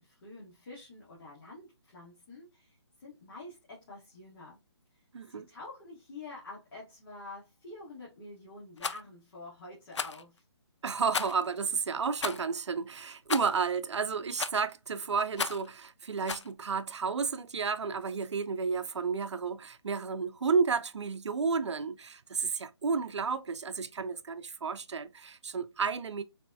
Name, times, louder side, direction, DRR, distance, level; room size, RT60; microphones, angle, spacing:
voice 1, 0.0-4.6 4.9-10.4, left 2 dB, 45° left, 1.4 m, -48 dB
voice 2, 5.1-5.5 10.8-26.2, right 5 dB, 80° right, 0.5 m, -32 dB
Rattle, 8.8-9.0 9.9-10.2 11.1-11.5 12.2-12.4 13.3-13.6 14.4-14.7 15.4-15.7 16.3-16.5, left 5 dB, 85° left, 0.4 m, -34 dB
4.1 x 2.1 x 2.5 m
figure-of-eight pair, 150°, 15 cm